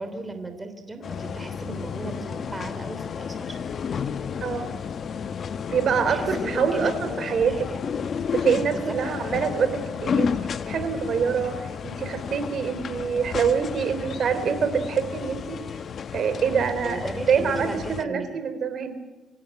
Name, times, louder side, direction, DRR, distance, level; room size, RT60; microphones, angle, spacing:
voice 1, 0.0-3.6 3.9-4.0 6.1-7.8 8.7-8.9 16.8-18.4, right 2 dB, 20° right, 8 dB, 3.2 m, -36 dB
sound 1, 1.0-18.0, left 6 dB, 55° left, 0.9 m, -32 dB
sound 2, 3.5-5.2 6.2-8.0 9.0-10.7, left 8 dB, 75° left, 2.0 m, -43 dB
voice 2, 4.4-4.7 5.7-7.6 8.3-15.6 16.1-19.0, right 6 dB, 60° right, 10 dB, 3.5 m, -25 dB
26.0 x 16.5 x 9.1 m, 1.1 s
cardioid pair, 90°, 0 cm